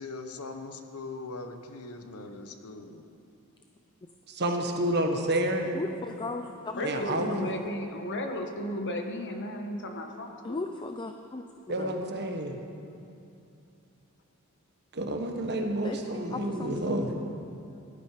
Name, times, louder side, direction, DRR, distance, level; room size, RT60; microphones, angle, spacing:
voice 1, 0.0-3.0, left 3 dB, 80° left, 7 dB, 1.1 m, -41 dB
voice 2, 4.3-5.8 6.8-7.5 11.7-12.6 14.9-17.1, right 1 dB, 50° right, 4 dB, 1.4 m, -29 dB
voice 3, 5.7-7.5 10.4-11.4 11.8-12.0 15.8-16.0 16.3-17.1, left 2 dB, 20° left, 5 dB, 0.5 m, -36 dB
voice 4, 6.8-10.7, left 1 dB, 55° left, 4 dB, 1.5 m, -34 dB
18.0 x 12.5 x 5.0 m, 2.6 s
head